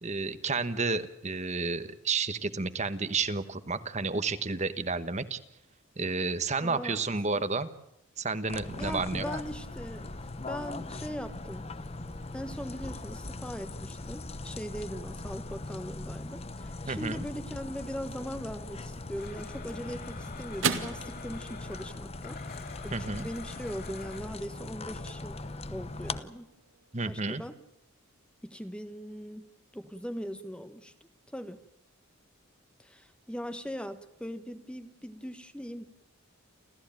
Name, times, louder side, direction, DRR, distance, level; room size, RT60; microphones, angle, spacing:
voice 1, 0.0-5.4 6.0-7.7 8.2-9.2 16.9-17.3 22.9-23.3 26.9-27.4, right 4 dB, 30° right, 12 dB, 1.2 m, -31 dB
voice 2, 6.6-7.0 7.3-7.4 8.8-10.1 10.5-11.7 12.3-22.4 22.8-25.4 25.7-26.5 27.1-27.6 28.4-29.5 29.7-30.9 31.3-31.6 32.8-35.9, equal, 5° left, 10 dB, 1.1 m, -40 dB
sound 1, 8.5-26.2, left 2 dB, 30° left, 0.9 m, -40 dB
Domestic sounds home sounds, 19.2-24.2, left 5 dB, 45° left, 3.9 m, -48 dB
sound 2, 19.3-27.9, right 5 dB, 65° right, 2.5 m, -41 dB
30.0 x 14.5 x 9.0 m, 0.80 s
head